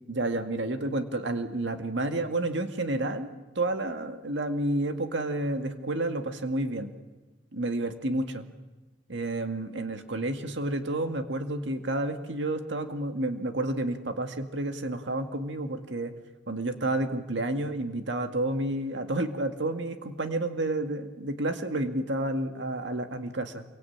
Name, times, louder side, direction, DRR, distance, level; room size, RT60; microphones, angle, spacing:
voice 1, 0.1-3.3 3.6-7.0 7.5-8.5 9.1-16.1 16.5-23.6, right 2 dB, 65° right, 6 dB, 2.0 m, -30 dB
27.5 x 23.5 x 8.8 m, 1.2 s
head